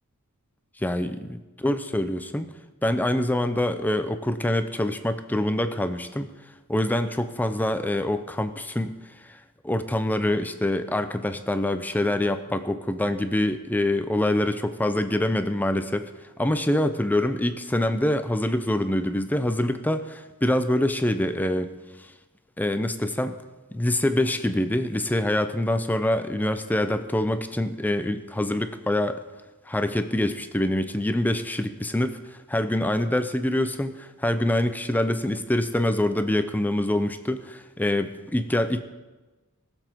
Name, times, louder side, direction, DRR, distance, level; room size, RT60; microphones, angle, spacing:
voice 1, 0.8-1.4 1.6-2.5 2.8-6.3 6.7-8.9 9.2-16.1 16.4-21.7 22.0-22.1 22.6-23.4 23.7-29.2 29.7-38.8, left 1 dB, 10° left, 9 dB, 0.5 m, -25 dB
19.5 x 7.1 x 4.5 m, 1.2 s
head